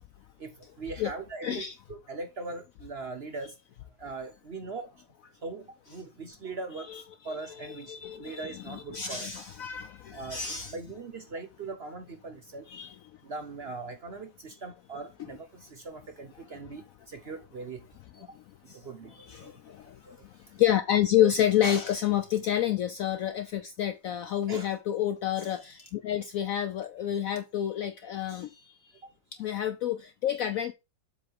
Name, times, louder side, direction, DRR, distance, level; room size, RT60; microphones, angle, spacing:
voice 1, 0.4-3.5 4.0-4.9 5.4-9.3 10.1-10.4 10.7-12.7 13.2-17.8 18.7-19.6 20.0-20.2 24.5-24.7, right 3 dB, 55° right, 0.7 m, -40 dB
voice 2, 1.4-1.8 6.9-10.8 12.7-12.9 19.3-19.8 20.6-28.5 29.4-30.7, left 11 dB, 85° left, 0.7 m, -29 dB
7.6 x 3.6 x 5.1 m
omnidirectional pair, 2.0 m